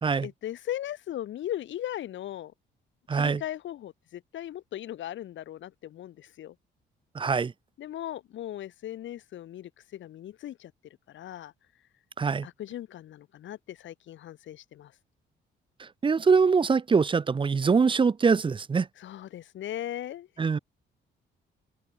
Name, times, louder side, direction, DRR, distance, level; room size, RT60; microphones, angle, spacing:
voice 1, 0.2-2.5 3.1-6.5 7.8-10.7 11.1-11.5 12.4-14.9 19.0-20.3, left 12 dB, 75° left, 2.0 m, -38 dB
voice 2, 3.1-3.4 7.2-7.5 12.2-12.5 16.0-18.9 20.4-20.6, right 5 dB, 25° right, 0.6 m, -23 dB
open air
cardioid pair, 90°, 20 cm